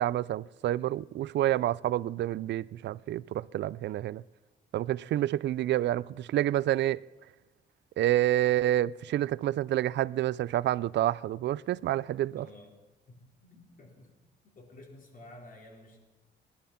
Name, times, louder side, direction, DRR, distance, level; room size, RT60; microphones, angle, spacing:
voice 1, 0.0-4.2 4.7-7.0 8.0-12.5, right 13 dB, 65° right, 0.4 m, -28 dB
voice 2, 12.3-12.7 13.1-14.1 14.4-16.0, left 1 dB, 45° left, 4.4 m, -52 dB
19.5 x 11.5 x 5.8 m
cardioid pair, 90°, 20 cm